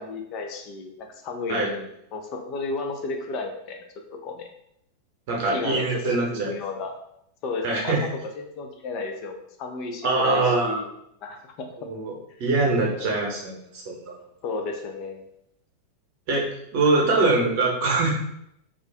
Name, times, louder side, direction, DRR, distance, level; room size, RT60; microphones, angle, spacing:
voice 1, 0.0-3.8 4.2-4.5 5.5-6.9 7.4-8.0 8.4-10.9 11.2-11.7 12.8-13.1 14.4-15.2, left 3 dB, 40° left, 4 dB, 0.4 m, -33 dB
voice 2, 5.3-6.6 7.6-8.0 10.0-10.8 11.9-12.1 12.4-14.2 16.3-18.1, right 3 dB, 50° right, -2 dB, 0.9 m, -23 dB
2.4 x 2.4 x 3.4 m, 0.77 s
figure-of-eight pair, 90°, 0 cm